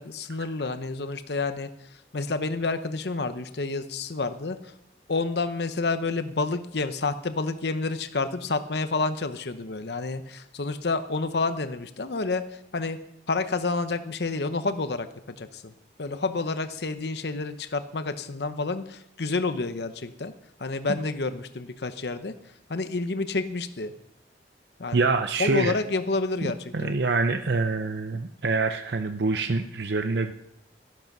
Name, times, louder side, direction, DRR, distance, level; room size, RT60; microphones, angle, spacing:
voice 1, 0.0-4.7 5.1-13.0 13.3-15.1 15.4-15.7 16.0-20.3 20.6-22.3 22.7-23.9 24.8-25.1 25.4-27.0, left 3 dB, 65° left, 10 dB, 0.8 m, -29 dB
voice 2, 24.9-25.8 26.4-30.3, right 3 dB, 65° right, 8 dB, 0.6 m, -26 dB
13.5 x 10.5 x 6.0 m, 0.77 s
head